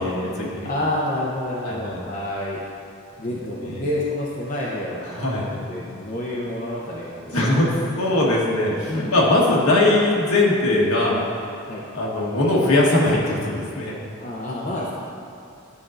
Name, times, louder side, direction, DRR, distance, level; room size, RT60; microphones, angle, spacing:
voice 1, 0.0-0.7 1.5-2.0 3.6-3.8 5.1-5.6 7.3-7.7 8.0-11.3 11.9-13.9, left 2 dB, 70° left, -4 dB, 1.3 m, -20 dB
voice 2, 0.6-2.6 3.2-7.4 8.9-9.2 11.7-11.8 14.2-14.9, left 1 dB, 35° left, -5 dB, 0.7 m, -28 dB
11.0 x 5.3 x 2.5 m, 2.5 s
head